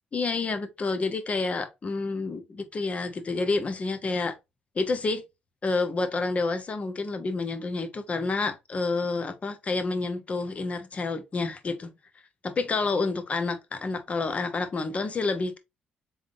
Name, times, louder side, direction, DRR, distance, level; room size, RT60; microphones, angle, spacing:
voice 1, 0.1-4.4 4.7-5.2 5.6-11.9 12.4-15.6, left 3 dB, 40° left, 1.0 m, -29 dB
3.9 x 3.5 x 2.7 m
supercardioid pair, 70°, 3 cm